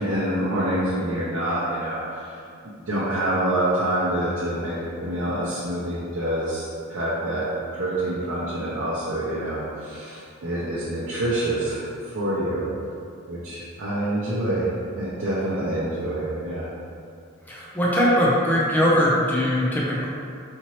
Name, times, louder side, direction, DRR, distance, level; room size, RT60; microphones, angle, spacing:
voice 1, 0.0-2.4 2.9-12.7 13.3-14.7 14.9-16.7, right 1 dB, 75° right, -8 dB, 0.7 m, -26 dB
voice 2, 17.5-20.1, equal, 10° left, -6 dB, 0.5 m, -21 dB
4.4 x 2.9 x 3.0 m, 2.4 s
head